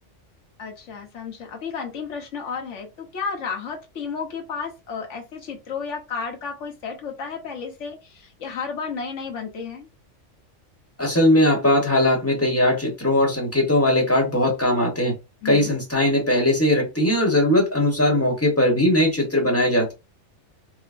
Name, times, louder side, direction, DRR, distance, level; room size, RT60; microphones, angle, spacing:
voice 1, 0.6-9.9 15.4-15.7, left 5 dB, 75° left, 1.2 m, -32 dB
voice 2, 11.0-15.1 15.4-19.9, left 1 dB, 10° left, 1.0 m, -19 dB
4.5 x 2.1 x 2.5 m
omnidirectional pair, 1.3 m